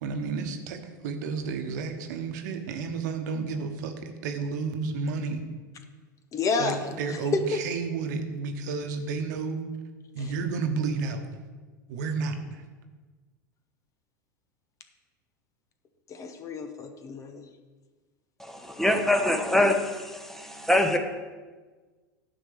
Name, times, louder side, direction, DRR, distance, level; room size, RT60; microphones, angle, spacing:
voice 1, 0.0-5.4 6.6-9.6 10.1-11.2 11.9-12.6, right 4 dB, 60° right, 6 dB, 1.1 m, -31 dB
voice 2, 6.3-6.8 7.3-7.6 16.1-17.4, left 4 dB, 30° left, 8 dB, 0.9 m, -29 dB
voice 3, 18.4-21.0, left 1 dB, 5° left, 5 dB, 1.0 m, -24 dB
10.0 x 4.5 x 6.7 m, 1.4 s
hypercardioid pair, 85°, 10 cm